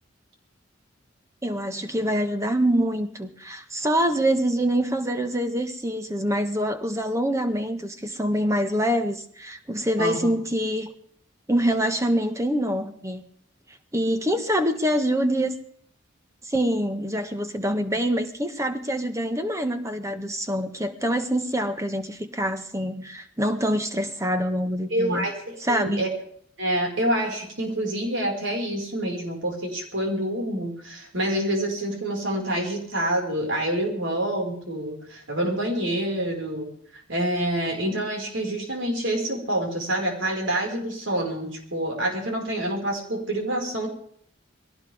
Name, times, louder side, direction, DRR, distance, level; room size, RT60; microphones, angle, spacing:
voice 1, 1.4-10.9 11.5-13.3 13.9-15.6 16.4-25.2 25.6-26.0, equal, 15° right, 7 dB, 1.5 m, -25 dB
voice 2, 10.0-10.3 24.9-26.1 26.6-43.9, right 1 dB, 70° right, 1 dB, 5.5 m, -27 dB
21.5 x 17.5 x 3.6 m, 0.63 s
head